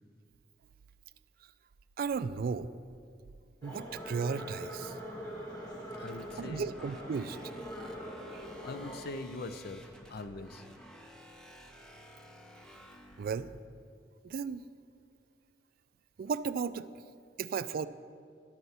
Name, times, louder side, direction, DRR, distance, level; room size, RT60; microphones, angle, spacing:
voice 1, 2.0-2.7 3.6-4.9 6.4-7.4 8.3-8.4 13.2-13.5 14.2-14.6 16.2-16.9 17.4-17.9, right 5 dB, 50° right, 14 dB, 0.3 m, -34 dB
sound 1, 3.6-9.0, equal, 20° left, 1.5 m, -43 dB
voice 2, 6.0-6.7 7.9-8.1 8.6-9.8 10.1-10.6, left 3 dB, 55° left, 10 dB, 0.5 m, -42 dB
sound 2, 6.1-13.6, equal, 5° left, 0.8 m, -54 dB
10.5 x 5.6 x 7.9 m, 2.2 s
head